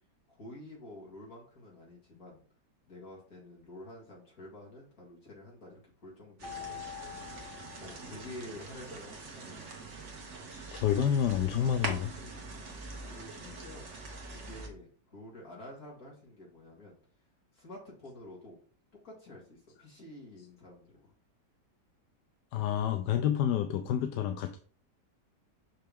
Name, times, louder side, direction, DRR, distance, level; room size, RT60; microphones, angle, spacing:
voice 1, 0.3-2.4 2.9-6.9 7.8-9.7 12.2-13.9 14.3-16.9 17.5-18.6 18.9-21.1, left 1 dB, 60° left, -3 dB, 2.8 m, -49 dB
Mallet percussion, 6.4-8.7, left 9 dB, 20° left, 0.9 m, -46 dB
sound 1, 6.4-14.7, right 3 dB, 45° right, 1.5 m, -43 dB
voice 2, 10.5-12.1 22.5-24.6, left 9 dB, 85° left, 7 dB, 1.2 m, -29 dB
6.0 x 5.6 x 3.5 m, 0.43 s
omnidirectional pair, 1.8 m